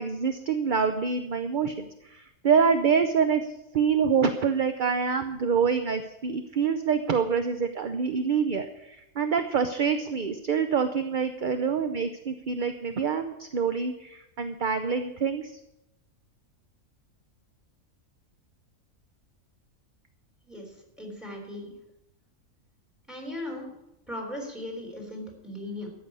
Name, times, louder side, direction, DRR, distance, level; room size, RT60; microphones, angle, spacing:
voice 1, 0.0-3.4 3.7-15.5, right 6 dB, 45° right, 8 dB, 0.8 m, -26 dB
voice 2, 21.0-21.7 23.1-23.7 24.1-25.9, left 1 dB, ahead, 1 dB, 3.7 m, -37 dB
14.0 x 6.2 x 9.6 m, 0.86 s
omnidirectional pair, 1.5 m